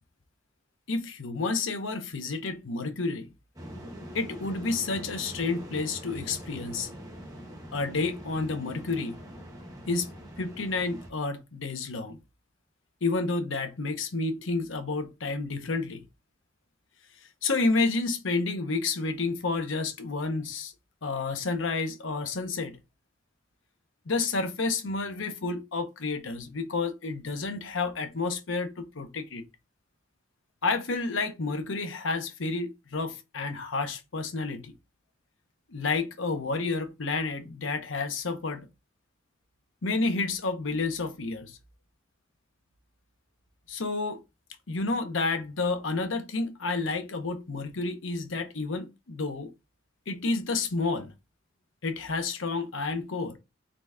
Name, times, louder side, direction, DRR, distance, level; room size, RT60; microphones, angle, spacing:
voice 1, 0.9-3.3 4.1-6.9 7.7-9.2 9.9-10.1 10.4-12.2 13.0-16.0 17.4-20.7 21.0-22.8 24.1-29.4 30.6-34.7 35.7-38.7 39.8-41.6 43.7-44.2 44.7-49.5 50.1-51.1 51.8-53.4, left 3 dB, 85° left, 0.8 m, -30 dB
sound 1, 3.6-11.1, equal, 20° right, 1.1 m, -43 dB
3.9 x 3.3 x 3.5 m
head